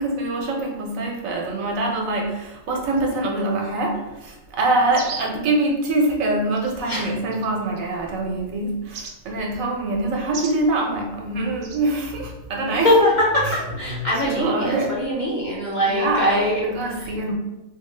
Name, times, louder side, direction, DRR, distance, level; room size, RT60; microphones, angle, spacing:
voice 1, 0.0-13.0 13.4-14.9 15.8-17.3, right 2 dB, 75° right, 0 dB, 1.1 m, -24 dB
sound 1, 4.9-5.4 6.5-6.7 7.3-7.8 8.9-9.1 10.3-10.6 11.6-11.8, right 4 dB, 60° right, 0.5 m, -34 dB
voice 2, 12.7-16.6 17.0-17.1, left 1 dB, 45° left, -6 dB, 0.6 m, -22 dB
4.3 x 2.1 x 3.2 m, 1.0 s
omnidirectional pair, 1.4 m